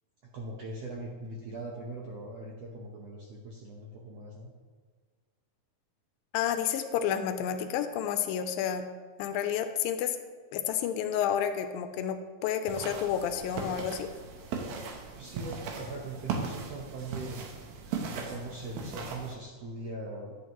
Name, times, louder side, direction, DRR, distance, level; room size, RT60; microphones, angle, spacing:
voice 1, 0.3-4.5 15.1-17.4 18.1-20.4, right 2 dB, 70° right, -3 dB, 1.5 m, -41 dB
voice 2, 6.3-8.8 9.2-10.2 10.5-14.1, left 9 dB, 85° left, 8 dB, 2.3 m, -30 dB
sound 1, 12.7-19.3, right 5 dB, 85° right, 2.9 m, -38 dB
11.0 x 8.4 x 3.0 m, 1.5 s
omnidirectional pair, 4.1 m